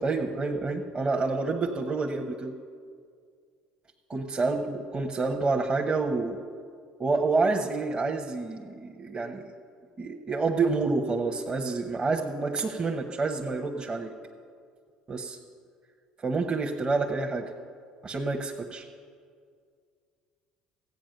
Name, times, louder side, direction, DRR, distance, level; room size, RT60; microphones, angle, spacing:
voice 1, 0.0-2.5 4.1-6.4 7.0-9.5 10.0-14.1 15.1-15.4 16.2-17.5 18.0-18.8, right 3 dB, 30° right, 1 dB, 1.0 m, -28 dB
14.5 x 8.9 x 6.6 m, 2.1 s
hypercardioid pair, 65°, 3 cm